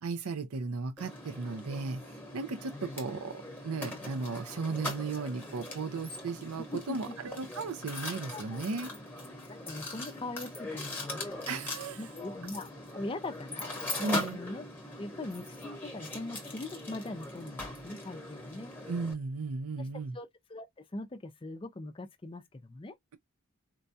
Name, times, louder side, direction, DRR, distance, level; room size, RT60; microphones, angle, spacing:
voice 1, 0.0-8.9 11.5-12.1 14.0-14.4 18.9-20.2, right 4 dB, 85° right, 0.6 m, -36 dB
Mechanisms, 1.0-19.1, left 2 dB, 10° left, 1.0 m, -41 dB
voice 2, 8.2-8.6 9.5-11.7 12.0-13.7 14.0-14.6 15.0-18.7 19.9-20.7 20.9-22.9, left 2 dB, 25° left, 0.4 m, -41 dB
4.5 x 2.2 x 2.6 m
head